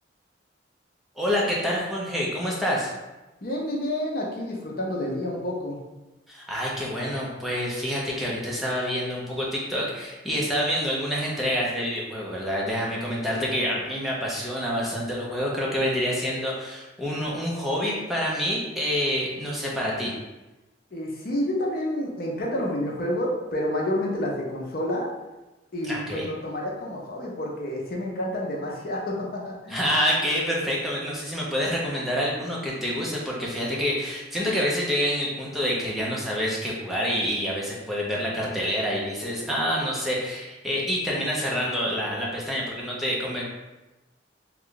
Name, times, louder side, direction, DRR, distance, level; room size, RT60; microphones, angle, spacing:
voice 1, 1.2-2.9 6.3-20.1 25.8-26.3 29.7-43.4, equal, ahead, -5 dB, 0.7 m, -27 dB
voice 2, 3.4-5.8 20.9-25.1 25.7-29.8, left 1 dB, 55° left, -2 dB, 0.7 m, -29 dB
3.2 x 2.4 x 3.8 m, 1.1 s
head